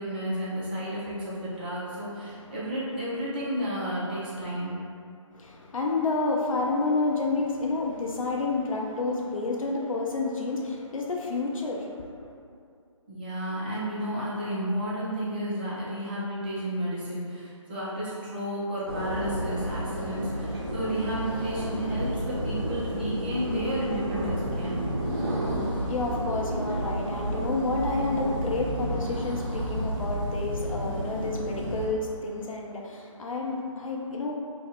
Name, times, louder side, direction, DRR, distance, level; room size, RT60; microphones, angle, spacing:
voice 1, 0.0-4.7 13.1-24.8, equal, 20° right, -9 dB, 0.4 m, -32 dB
voice 2, 5.3-12.3 25.6-34.3, left 3 dB, 85° left, -1 dB, 0.5 m, -30 dB
sound 1, 18.9-31.9, equal, 45° right, 0.8 m, -31 dB
2.5 x 2.3 x 4.1 m, 2.4 s
figure-of-eight pair, 155°, 17 cm